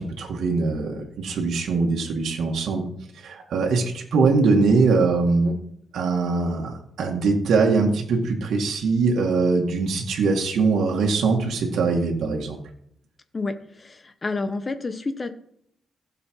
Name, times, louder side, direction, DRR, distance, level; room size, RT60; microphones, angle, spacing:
voice 1, 0.0-2.8 3.2-5.6 5.9-12.6, right 4 dB, 70° right, 0 dB, 2.2 m, -22 dB
voice 2, 13.3-15.3, left 3 dB, 25° left, 10 dB, 1.1 m, -29 dB
15.5 x 7.0 x 4.8 m, 0.68 s
cardioid pair, 140°, 0 cm